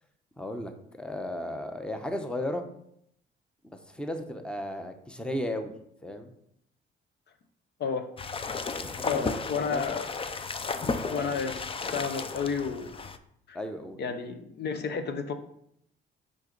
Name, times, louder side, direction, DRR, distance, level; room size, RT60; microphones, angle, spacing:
voice 1, 0.4-2.6 3.7-5.7 6.0-6.3 8.7-9.8 10.9-11.5 12.0-12.1 13.5-14.2, left 1 dB, 5° left, 6 dB, 0.8 m, -35 dB
sound 1, 8.2-13.2, left 4 dB, 30° left, 0.5 m, -34 dB
voice 2, 9.0-10.1 11.1-11.5 11.9-12.9 13.5-13.6 14.0-15.3, left 5 dB, 60° left, 8 dB, 0.7 m, -31 dB
6.3 x 5.3 x 3.9 m, 0.72 s
cardioid pair, 90°, 20 cm